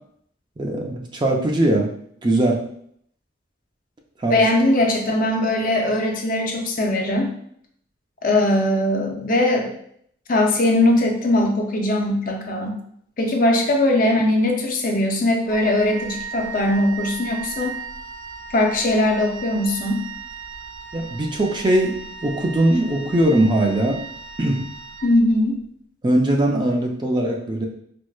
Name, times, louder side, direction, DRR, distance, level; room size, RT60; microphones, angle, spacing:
voice 1, 0.6-1.9 2.2-2.6 4.2-4.5 20.9-24.0 24.4-24.6 26.0-27.6, right 1 dB, 25° right, 1 dB, 0.4 m, -20 dB
voice 2, 4.3-7.3 8.2-9.7 10.3-12.8 13.2-17.8 18.5-20.0 25.0-25.6, left 1 dB, 45° left, 1 dB, 0.5 m, -20 dB
Wind instrument woodwind instrument, 15.5-25.6, right 5 dB, 85° right, 0.5 m, -36 dB
4.5 x 2.1 x 2.3 m, 0.68 s
head